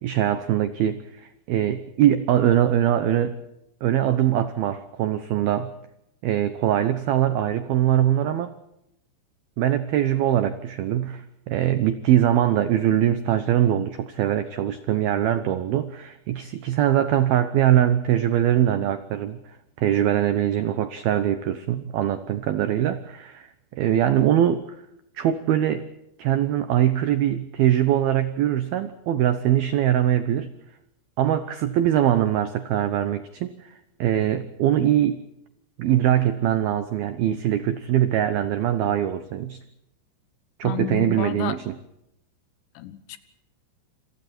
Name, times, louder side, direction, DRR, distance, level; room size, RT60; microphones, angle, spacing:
voice 1, 0.0-3.4 3.8-5.7 6.2-8.5 9.6-19.4 19.8-24.6 25.2-25.9 26.2-30.5 31.2-35.2 35.8-39.6 40.6-41.8, right 11 dB, 80° right, 11 dB, 2.2 m, -22 dB
voice 2, 40.6-41.6 42.7-43.2, left 11 dB, 70° left, 11 dB, 3.3 m, -31 dB
28.0 x 27.0 x 4.4 m, 0.81 s
omnidirectional pair, 5.8 m